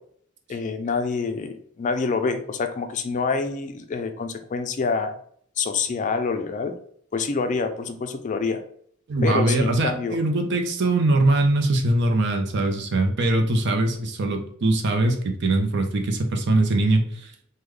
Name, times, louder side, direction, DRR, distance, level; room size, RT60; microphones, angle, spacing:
voice 1, 0.5-5.1 5.6-6.7 7.1-8.6 9.2-10.2, left 4 dB, 40° left, 7 dB, 0.4 m, -26 dB
voice 2, 9.1-17.3, right 2 dB, 60° right, 4 dB, 0.6 m, -22 dB
3.6 x 2.2 x 3.1 m, 0.62 s
head